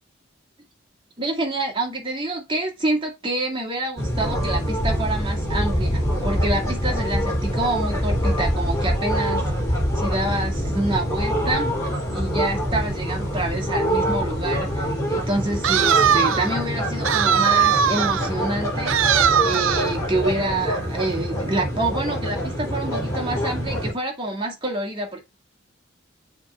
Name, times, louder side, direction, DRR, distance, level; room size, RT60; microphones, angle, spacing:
voice 1, 1.2-9.4 10.0-11.8 12.1-25.2, right 2 dB, 25° right, 2.1 m, -27 dB
sound 1, 4.0-23.9, equal, 15° left, 2.4 m, -25 dB
sound 2, 15.6-16.5 17.0-18.3 18.9-20.0, right 8 dB, 85° right, 0.5 m, -19 dB
7.0 x 3.7 x 4.4 m
head